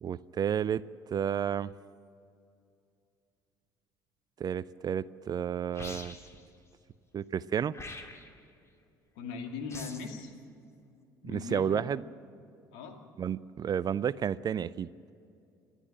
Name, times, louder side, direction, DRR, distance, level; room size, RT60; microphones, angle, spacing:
voice 1, 0.0-0.8 1.1-1.7 4.4-6.1 7.1-7.7 11.2-12.0 13.2-14.9, right 8 dB, 40° right, 18 dB, 0.5 m, -31 dB
sound 1, 5.7-6.4 7.7-8.4 9.7-10.2, left 2 dB, 25° left, 2.4 m, -44 dB
voice 2, 9.2-10.3 11.2-11.9 12.7-13.0, left 5 dB, 70° left, 4 dB, 2.3 m, -39 dB
28.5 x 11.0 x 8.8 m, 2.5 s
hypercardioid pair, 60°, 11 cm